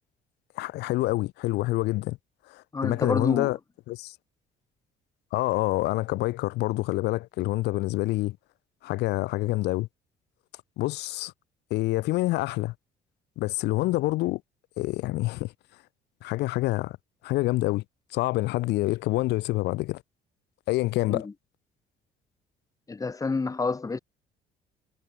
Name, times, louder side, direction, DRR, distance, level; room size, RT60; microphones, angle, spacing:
voice 1, 0.6-2.2 2.5-3.6 3.9-4.1 5.3-8.4 8.8-9.9 10.8-11.3 11.7-12.7 13.4-14.4 14.8-15.5 16.2-17.0 17.2-17.8 18.1-20.0 20.7-21.3, left 19 dB, 85° left, 1.8 m, -27 dB
voice 2, 2.7-3.5 21.1-21.3 22.9-24.0, left 4 dB, 20° left, 1.5 m, -28 dB
cardioid pair, 110°, 17 cm